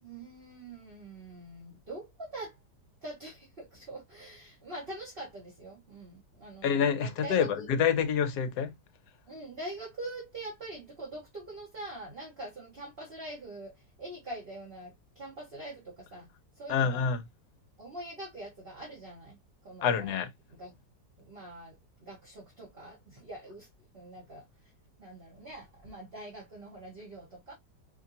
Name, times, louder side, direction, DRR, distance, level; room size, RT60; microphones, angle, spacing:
voice 1, 0.0-2.6 3.0-7.7 9.3-13.7 14.0-16.3 16.6-17.1 17.8-19.4 19.6-20.2 20.5-20.7 21.2-23.7 23.9-24.4 25.0-27.5, right 1 dB, 35° right, 1.5 m, -44 dB
voice 2, 6.6-8.7 16.7-17.2 19.8-20.3, left 7 dB, 70° left, 1.2 m, -27 dB
5.1 x 2.8 x 2.7 m
omnidirectional pair, 1.9 m